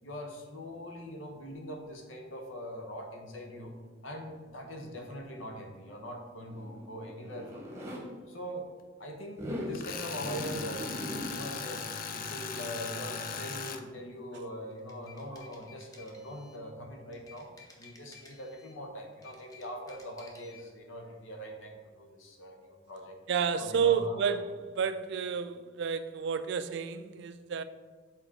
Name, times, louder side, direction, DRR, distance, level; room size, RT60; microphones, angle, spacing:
voice 1, 0.0-3.7 4.0-7.8 8.3-8.7 9.0-17.5 17.8-23.2 23.6-24.4, equal, 80° left, 1.0 m, -42 dB
Zipper (clothing), 6.4-8.0 9.3-9.8 10.2-11.3, equal, 15° right, 1.0 m, -39 dB
Tools, 9.7-13.8, left 6 dB, 45° left, 0.4 m, -38 dB
sound 1, 14.7-16.7 17.1-18.8 19.1-20.7, left 4 dB, 20° left, 0.8 m, -55 dB
voice 2, 23.3-24.4 24.8-27.6, right 7 dB, 60° right, 0.3 m, -30 dB
6.9 x 4.4 x 3.7 m
head